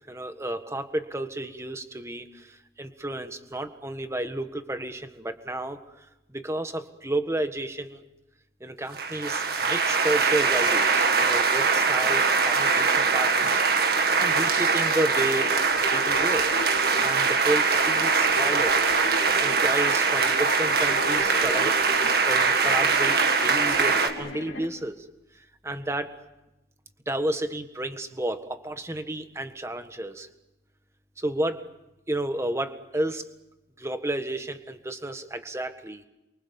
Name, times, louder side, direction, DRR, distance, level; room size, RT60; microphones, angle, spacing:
voice 1, 0.1-5.8 6.3-8.0 8.6-13.6 14.1-15.5 15.9-16.5 17.0-18.8 19.4-25.1 25.6-26.2 27.0-30.3 31.2-31.7 32.1-33.3 33.8-36.0, right 1 dB, 15° right, 8 dB, 1.5 m, -31 dB
sound 1, 8.9-24.1, right 4 dB, 55° right, 2.0 m, -22 dB
sound 2, 14.8-24.6, left 1 dB, 80° left, 2.8 m, -37 dB
28.5 x 24.0 x 7.1 m, 0.95 s
head